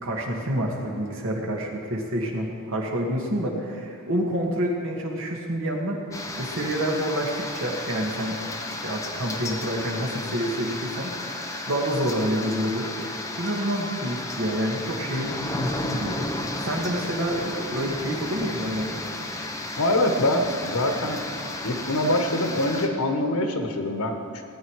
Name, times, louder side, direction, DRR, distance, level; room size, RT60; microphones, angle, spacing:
voice 1, 0.0-6.0 6.4-8.4 8.7-11.1 11.7-12.9 13.4-19.1, equal, 65° right, 0 dB, 2.1 m, -28 dB
sound 1, 6.1-22.9, left 2 dB, 15° left, 0.9 m, -33 dB
voice 2, 19.8-21.2 21.6-24.4, left 1 dB, 85° left, 5 dB, 1.4 m, -24 dB
18.0 x 9.6 x 4.8 m, 2.6 s
head